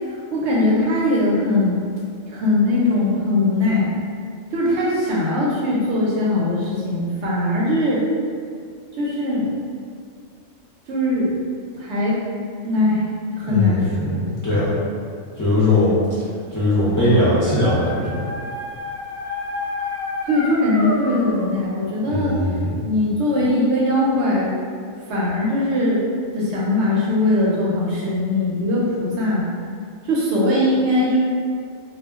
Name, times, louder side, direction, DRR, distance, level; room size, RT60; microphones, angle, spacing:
voice 1, 0.3-1.8 2.3-4.0 4.5-8.0 9.0-9.5 10.9-11.3 11.8-12.2 12.6-13.0 13.3-14.3 20.3-22.5 22.8-24.5 25.1-26.0 26.3-29.5 30.1-31.2, left 1 dB, 65° right, -5 dB, 0.8 m, -20 dB
voice 2, 13.5-14.7 15.4-15.9 16.5-18.3 22.1-22.8, left 1 dB, 25° left, -11 dB, 0.4 m, -20 dB
Dog, 16.4-21.5, left 2 dB, 15° right, 0.8 m, -30 dB
2.2 x 2.1 x 3.4 m, 2.2 s
omnidirectional pair, 1.4 m